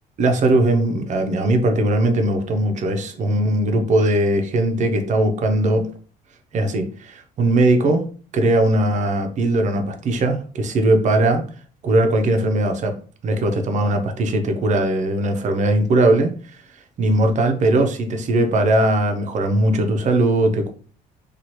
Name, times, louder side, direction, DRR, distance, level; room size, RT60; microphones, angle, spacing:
voice 1, 0.2-5.9 6.5-8.0 8.3-11.4 11.8-13.0 13.2-16.3 17.0-20.7, right 1 dB, 45° right, 6 dB, 0.6 m, -19 dB
2.8 x 2.3 x 3.0 m, 0.41 s
cardioid pair, 110°, 17 cm